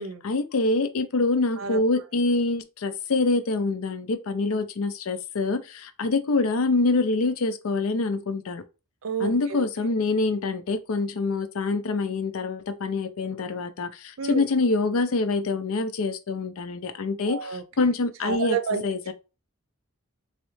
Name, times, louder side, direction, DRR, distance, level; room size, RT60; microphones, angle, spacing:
voice 1, 0.2-8.6 9.2-18.6 18.8-19.1, left 3 dB, 85° left, 0.5 m, -25 dB
voice 2, 9.0-9.7 14.2-14.5 17.3-17.9 18.2-18.8, right 6 dB, 70° right, 0.5 m, -30 dB
3.6 x 3.1 x 3.1 m
head